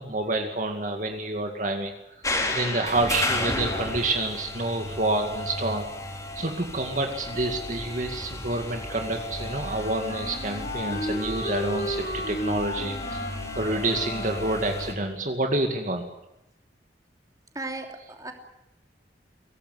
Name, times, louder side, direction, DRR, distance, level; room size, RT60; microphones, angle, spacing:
voice 1, 0.0-1.9 2.5-5.8 6.4-13.3 13.6-16.1, right 2 dB, 45° right, 4 dB, 2.3 m, -28 dB
sound 1, 2.2-14.9, left 2 dB, 20° left, 4.0 m, -33 dB
Wind instrument woodwind instrument, 9.3-14.7, equal, 50° left, 6.6 m, -34 dB
voice 2, 17.5-18.3, right 2 dB, 20° right, 3 dB, 3.0 m, -35 dB
23.5 x 18.0 x 9.6 m, 0.90 s
head